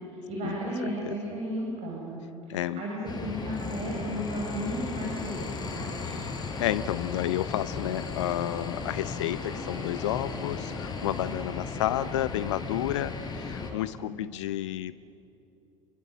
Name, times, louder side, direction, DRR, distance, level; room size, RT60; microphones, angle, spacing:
voice 1, 0.1-2.2 2.5-6.2 14.0-14.2, equal, 40° right, -3 dB, 6.8 m, -34 dB
voice 2, 2.5-2.8 6.6-15.0, left 13 dB, 65° left, 16 dB, 0.6 m, -31 dB
sound 1, 3.1-13.7, left 4 dB, 25° left, 4.8 m, -35 dB
28.5 x 23.5 x 7.8 m, 2.7 s
figure-of-eight pair, 70°, 17 cm